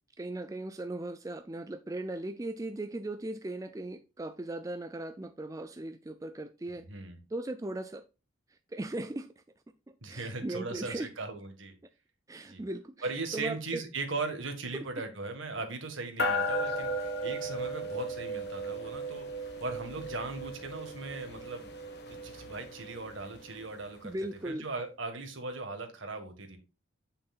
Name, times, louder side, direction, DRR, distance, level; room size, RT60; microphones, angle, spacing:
voice 1, 0.2-6.9 7.3-8.1 8.5-9.4 9.9-11.1 12.3-13.8 14.7-14.8 24.0-24.7, right 1 dB, 15° right, 0.3 m, -38 dB
voice 2, 6.9-7.2 10.0-11.7 12.5-12.6 13.0-19.3 19.6-21.7 22.1-24.1 24.4-26.6, right 3 dB, 65° right, 1.7 m, -38 dB
sound 1, 16.2-23.9, equal, 50° left, 1.4 m, -36 dB
7.9 x 6.6 x 2.4 m
head